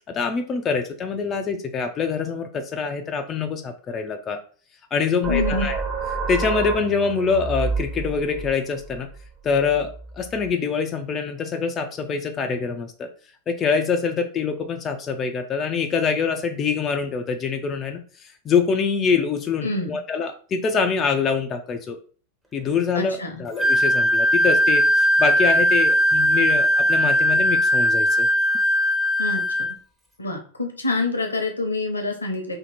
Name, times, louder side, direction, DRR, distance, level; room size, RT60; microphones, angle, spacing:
voice 1, 0.0-4.4 4.9-5.8 6.3-9.1 9.4-13.1 13.5-22.0 22.5-28.3, left 5 dB, 25° left, 5 dB, 0.4 m, -25 dB
sound 1, 5.2-10.5, right 3 dB, 30° right, 1.0 m, -30 dB
voice 2, 5.3-5.7 19.6-20.0 22.9-23.4 29.2-29.4 30.2-32.6, left 2 dB, 80° left, 4 dB, 0.8 m, -26 dB
Wind instrument woodwind instrument, 23.6-29.7, equal, 5° right, 0.9 m, -19 dB
2.8 x 2.8 x 4.0 m, 0.41 s
figure-of-eight pair, 90°, 0 cm